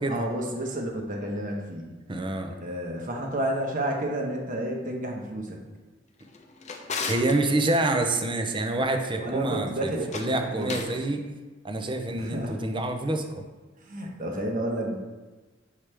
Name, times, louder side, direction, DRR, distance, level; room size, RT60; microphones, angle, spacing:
voice 1, 0.0-1.9 2.6-5.6 9.2-10.1 10.5-10.9 12.1-12.6 13.8-15.0, right 1 dB, 45° right, 0 dB, 1.1 m, -31 dB
voice 2, 2.1-2.6 7.0-11.2 11.6-13.4, right 2 dB, 25° right, 4 dB, 0.6 m, -27 dB
Drawer open or close, 6.2-7.4 10.0-11.0, left 4 dB, 40° left, 0.6 m, -35 dB
7.4 x 4.9 x 3.3 m, 1.2 s
head